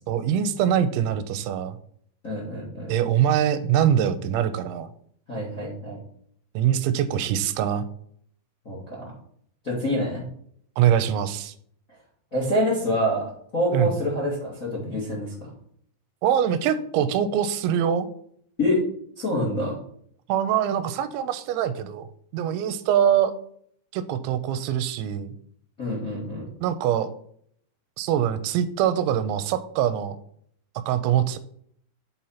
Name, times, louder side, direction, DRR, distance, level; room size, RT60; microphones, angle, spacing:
voice 1, 0.1-1.8 2.9-4.9 6.6-7.8 10.8-11.5 13.7-13.9 16.2-18.1 20.3-23.3 23.9-25.4 26.6-27.1 28.0-30.2 30.9-31.4, right 9 dB, 85° right, 11 dB, 3.0 m, -23 dB
voice 2, 2.2-2.9 5.3-6.0 8.6-9.0 9.6-10.3 12.3-15.5 18.6-18.8 19.2-19.8 25.8-26.5, left 1 dB, 35° left, -3 dB, 1.3 m, -26 dB
8.0 x 4.4 x 5.6 m, 0.63 s
omnidirectional pair, 5.2 m